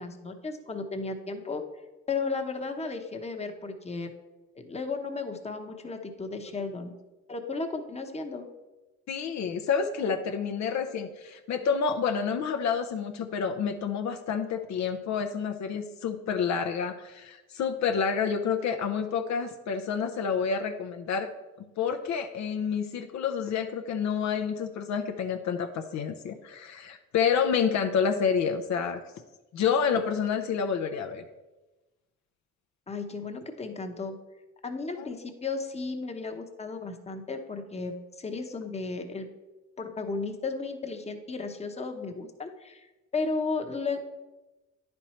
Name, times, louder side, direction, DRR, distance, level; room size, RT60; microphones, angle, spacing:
voice 1, 0.0-1.6 2.1-4.1 4.6-6.9 7.3-8.5 32.9-34.2 34.6-39.3 39.8-42.9 43.1-44.0, left 4 dB, 20° left, 5 dB, 0.9 m, -34 dB
voice 2, 9.1-21.3 21.8-29.0 29.5-31.2 35.0-35.1, left 6 dB, 65° left, 6 dB, 0.6 m, -29 dB
10.0 x 4.4 x 4.3 m, 1.1 s
cardioid pair, 90°, 30 cm